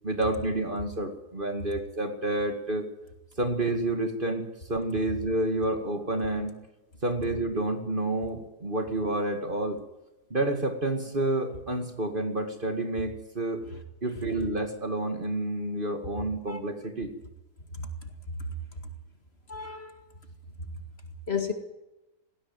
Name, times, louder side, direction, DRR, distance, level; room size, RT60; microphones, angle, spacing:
voice 1, 0.0-2.9 3.4-6.5 7.0-9.8 10.3-13.6 14.0-17.1, right 2 dB, 35° right, 6 dB, 2.3 m, -29 dB
voice 2, 19.5-20.0 21.3-21.5, left 5 dB, 40° left, 7 dB, 2.3 m, -32 dB
19.5 x 16.0 x 9.2 m, 0.98 s
omnidirectional pair, 1.6 m